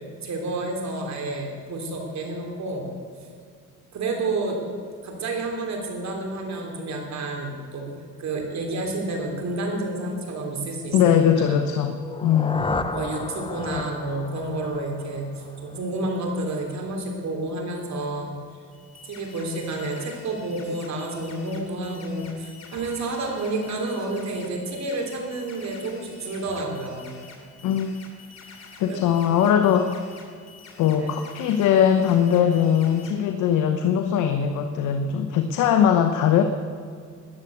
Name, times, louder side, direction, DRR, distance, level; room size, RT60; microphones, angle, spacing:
voice 1, 0.2-2.9 3.9-4.6 5.0-7.9 8.2-11.7 12.9-15.3 15.6-18.4 19.0-27.2 28.9-29.0 29.4-29.5, right 2 dB, 65° right, 2 dB, 3.3 m, -30 dB
voice 2, 10.9-12.6 27.6-27.9 28.8-30.0 30.8-36.4, left 8 dB, 90° left, 6 dB, 0.9 m, -20 dB
sound 1, 12.0-15.9, left 3 dB, 15° left, 0.8 m, -33 dB
sound 2, 18.7-33.1, left 4 dB, 60° left, 2.8 m, -48 dB
14.0 x 9.8 x 7.7 m, 2.1 s
cardioid pair, 90°, 30 cm